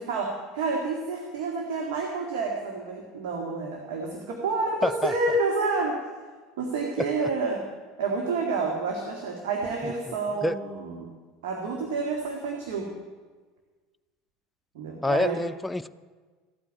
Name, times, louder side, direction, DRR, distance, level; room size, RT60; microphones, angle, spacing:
voice 1, 0.0-6.0 6.6-7.6 8.0-11.1 11.4-12.9 14.7-15.4, right 3 dB, 65° right, 1 dB, 2.0 m, -29 dB
voice 2, 4.8-5.1 7.0-7.3 9.8-10.2 10.4-10.6 15.0-15.9, left 2 dB, 5° left, 11 dB, 0.6 m, -27 dB
14.5 x 8.7 x 9.5 m, 1.4 s
figure-of-eight pair, 70°, 0 cm